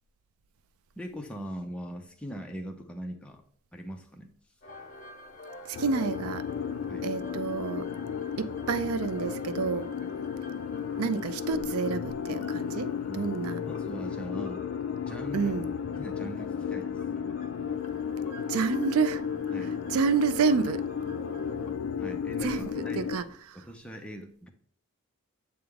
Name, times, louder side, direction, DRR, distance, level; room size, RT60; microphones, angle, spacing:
voice 1, 1.0-3.4 3.7-4.3 6.9-7.1 10.0-10.1 13.1-13.3 13.6-14.7 15.0-15.5 16.0-17.0 19.5-19.7 22.0-23.1 23.5-24.5, equal, 5° left, 0.6 m, -40 dB
sound 1, 4.6-21.7, left 1 dB, 35° left, 1.1 m, -48 dB
voice 2, 5.6-6.5 7.0-7.9 8.4-9.9 11.0-13.6 15.3-15.7 18.5-19.2 19.9-20.9 22.4-23.3 23.5-23.6, right 5 dB, 80° right, 0.4 m, -29 dB
sound 2, 5.7-23.2, left 7 dB, 70° left, 0.4 m, -34 dB
7.7 x 3.4 x 3.5 m
head